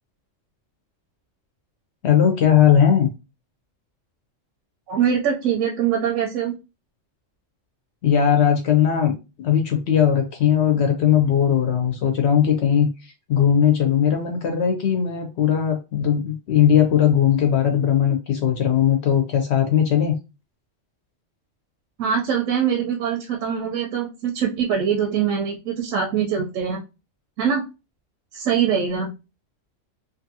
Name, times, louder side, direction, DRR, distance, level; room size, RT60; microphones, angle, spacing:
voice 1, 2.0-3.1 8.0-20.2, left 9 dB, 65° left, 3 dB, 0.8 m, -19 dB
voice 2, 4.9-6.6 22.0-26.8 27.4-27.6 28.3-29.1, right 7 dB, 85° right, 1 dB, 1.0 m, -23 dB
2.6 x 2.6 x 2.6 m, 0.27 s
omnidirectional pair, 1.3 m